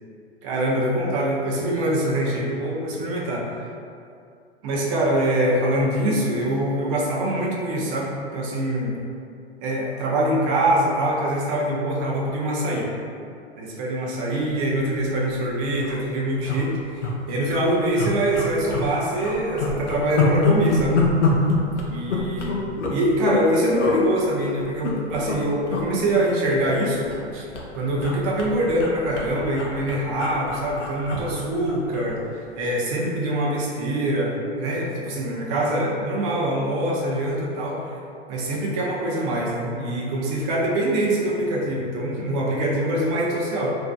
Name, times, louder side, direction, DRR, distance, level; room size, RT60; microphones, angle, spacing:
voice 1, 0.4-3.5 4.6-9.0 9.6-12.9 13.5-16.8 17.3-21.1 21.9-22.6 22.9-27.5 27.7-32.2 32.6-38.0 38.3-43.8, right 1 dB, 30° right, -3 dB, 0.4 m, -24 dB
sound 1, 15.0-15.2 15.4-15.5 15.7-16.0 16.4-17.1 17.5-17.6 18.0-18.9 19.2-23.4 23.8-24.0 24.6-25.4 25.7-25.9 26.1-27.3 27.5-32.1 32.4-32.6, left 3 dB, 90° left, 0.5 m, -25 dB
2.5 x 2.3 x 2.2 m, 2.4 s
figure-of-eight pair, 100°, 34 cm